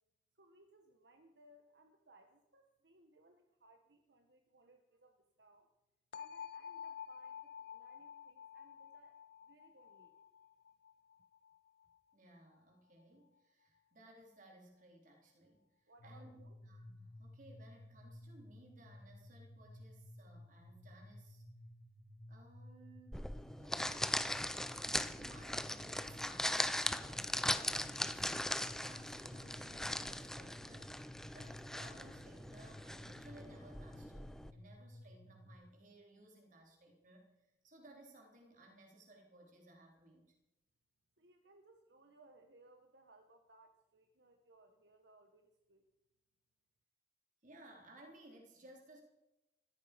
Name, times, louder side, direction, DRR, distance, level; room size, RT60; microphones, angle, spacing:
voice 1, 0.3-5.7 6.1-10.1 15.9-16.6 41.2-45.8, right 2 dB, 75° right, 5 dB, 1.5 m, -65 dB
sound 1, 6.1-12.0, left 8 dB, 60° left, 0.6 m, -51 dB
voice 2, 12.1-21.4 22.3-28.3 28.8-31.0 31.3-40.4 47.4-49.0, right 1 dB, 50° right, 1 dB, 4.0 m, -60 dB
sound 2, 16.0-35.5, left 1 dB, 85° left, 2.9 m, -56 dB
sound 3, 23.1-34.5, left 1 dB, 5° left, 0.6 m, -40 dB
16.0 x 14.5 x 5.3 m, 0.93 s
head